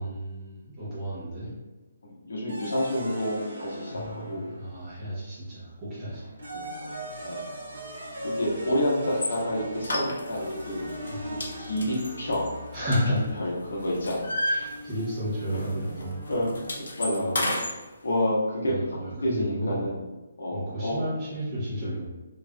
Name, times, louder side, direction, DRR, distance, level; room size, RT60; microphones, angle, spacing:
voice 1, 0.0-1.5 3.9-6.3 11.1-11.2 12.7-13.4 14.4-16.2 17.2-17.4 18.6-19.8 20.5-22.1, equal, 10° right, -12 dB, 0.9 m, -32 dB
voice 2, 2.0-4.5 6.5-6.9 7.2-7.4 8.2-10.8 11.6-12.6 13.4-14.3 16.3-16.5 16.8-18.8 19.2-20.0 20.4-21.0, left 1 dB, 85° left, -4 dB, 1.4 m, -29 dB
sound 1, 2.5-5.1 6.1-17.3, equal, 60° right, 1.5 m, -39 dB
sound 2, 9.1-9.4 9.8-10.6 10.9-11.1 11.4-13.5 13.8-15.3 15.5-15.7 16.0-17.7, left 1 dB, 65° left, 0.7 m, -31 dB
5.3 x 2.6 x 2.3 m, 1.1 s
hypercardioid pair, 180°, 0 cm